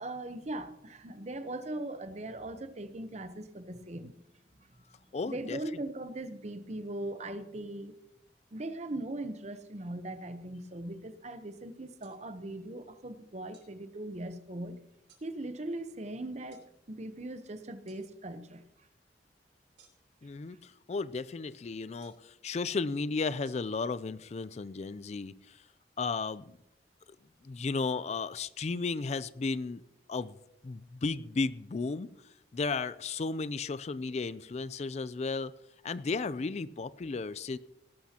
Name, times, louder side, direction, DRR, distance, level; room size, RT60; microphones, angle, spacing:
voice 1, 0.0-4.1 5.2-8.0 8.5-14.8 15.2-18.6 20.5-20.6, right 1 dB, 40° right, 0.8 m, -40 dB
voice 2, 5.1-5.8 20.2-25.6 26.0-26.6 27.4-29.8 30.1-30.3 30.6-32.1 32.5-35.5 35.8-37.6, left 4 dB, 40° left, 0.4 m, -34 dB
sound 1, 12.0-12.2 13.5-13.7 15.1-15.3 16.5-16.7 17.9-18.0 19.8-20.2 22.0-22.3 23.4-23.5, right 5 dB, 85° right, 3.5 m, -61 dB
19.0 x 12.0 x 2.9 m
head